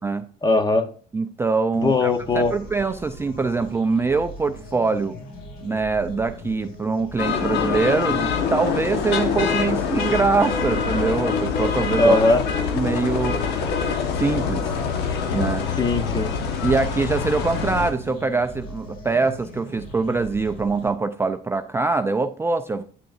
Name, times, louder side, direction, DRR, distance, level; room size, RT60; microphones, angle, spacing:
voice 1, 0.4-0.9 1.7-2.6 12.0-12.4 15.8-16.3, left 2 dB, 25° left, 9 dB, 0.9 m, -19 dB
voice 2, 1.1-5.2 5.6-12.2 12.7-13.4 14.1-14.7 15.3-15.7 16.6-22.8, right 4 dB, 15° right, 8 dB, 0.3 m, -23 dB
sound 1, 1.7-20.9, left 2 dB, 60° left, 3.8 m, -40 dB
sound 2, 7.2-17.9, left 6 dB, 90° left, 1.1 m, -25 dB
8.9 x 6.7 x 2.5 m, 0.43 s
cardioid pair, 110°, 17 cm